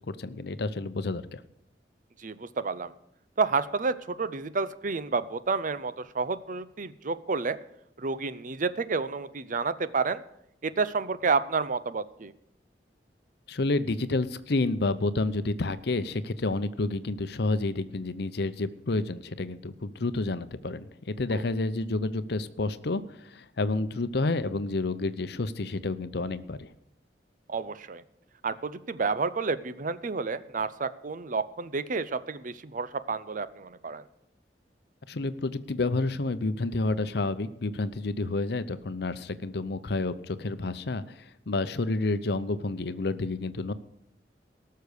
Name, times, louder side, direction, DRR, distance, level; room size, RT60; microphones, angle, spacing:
voice 1, 0.1-1.4 13.5-26.7 35.1-43.7, left 2 dB, 65° left, 13 dB, 0.7 m, -30 dB
voice 2, 2.2-2.9 3.4-7.6 8.0-10.2 10.6-12.3 21.3-21.4 27.5-28.0 28.4-34.0, right 4 dB, 50° right, 14 dB, 0.7 m, -30 dB
18.0 x 6.7 x 6.7 m, 0.80 s
head